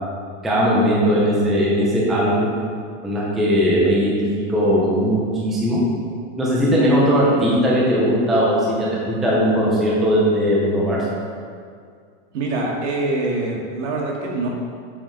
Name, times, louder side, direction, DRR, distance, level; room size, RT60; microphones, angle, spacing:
voice 1, 0.4-2.5 3.0-4.1 4.5-5.8 6.4-11.0, equal, ahead, -6 dB, 0.4 m, -18 dB
voice 2, 12.3-14.5, right 2 dB, 75° right, -1 dB, 1.8 m, -24 dB
7.3 x 5.4 x 4.9 m, 2.1 s
supercardioid pair, 175°, 36 cm